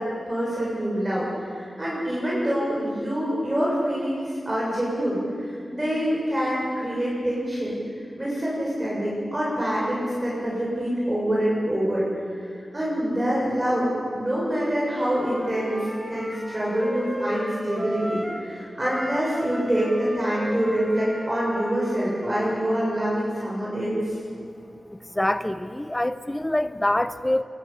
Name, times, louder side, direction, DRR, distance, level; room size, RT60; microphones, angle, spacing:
voice 1, 0.0-7.8 8.2-12.1 12.7-15.8 16.1-24.0, equal, 20° right, -6 dB, 7.3 m, -26 dB
Wind instrument woodwind instrument, 14.9-18.5 18.8-22.7, equal, 5° right, 3.4 m, -36 dB
voice 2, 24.9-27.4, left 1 dB, 15° left, 11 dB, 0.8 m, -25 dB
24.0 x 21.5 x 8.5 m, 2.3 s
wide cardioid pair, 105°, 0 cm